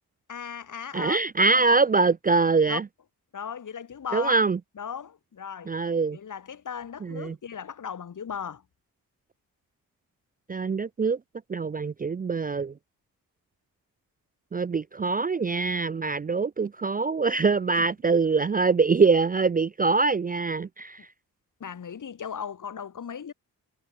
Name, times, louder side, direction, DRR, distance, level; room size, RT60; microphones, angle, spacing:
voice 1, 0.3-1.2 1.5-1.8 2.7-2.8 3.3-4.4 4.7-5.7 6.1-8.6 17.7-17.9 21.6-23.3, left 7 dB, 55° left, 1.6 m, -37 dB
voice 2, 0.9-2.8 4.1-4.6 5.7-6.2 7.0-7.4 10.5-11.2 11.5-12.7 14.5-21.0, right 4 dB, 25° right, 0.4 m, -24 dB
cardioid pair, 55°, 37 cm